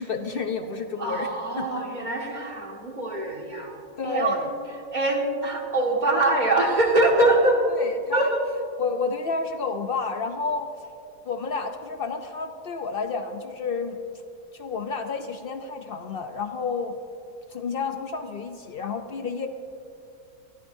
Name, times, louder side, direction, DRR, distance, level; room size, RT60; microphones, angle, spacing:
voice 1, 0.0-1.3 1.6-1.7 4.0-4.5 7.8-8.2 8.8-10.7 11.2-14.0 14.5-17.0 17.5-19.5, left 4 dB, 80° left, 6 dB, 0.5 m, -30 dB
voice 2, 1.0-4.5 4.9-7.7 8.1-8.4, right 2 dB, 25° right, -1 dB, 1.9 m, -23 dB
24.5 x 14.0 x 2.7 m, 2.5 s
omnidirectional pair, 1.9 m